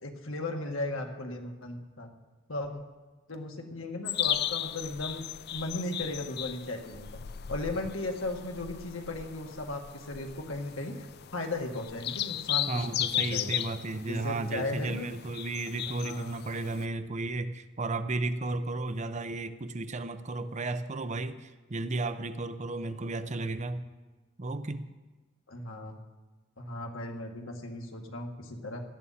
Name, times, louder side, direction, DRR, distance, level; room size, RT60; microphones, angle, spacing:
voice 1, 0.0-2.1 2.5-2.8 3.3-5.2 5.5-7.1 7.5-13.6 14.1-15.1 15.9-16.4 25.5-26.0 26.6-28.8, left 2 dB, 80° left, 1.8 m, -36 dB
sound 1, 4.1-16.8, left 11 dB, 50° left, 0.4 m, -36 dB
voice 2, 12.7-23.9 24.4-24.9, right 2 dB, 35° right, 0.6 m, -34 dB
17.5 x 12.5 x 4.3 m
head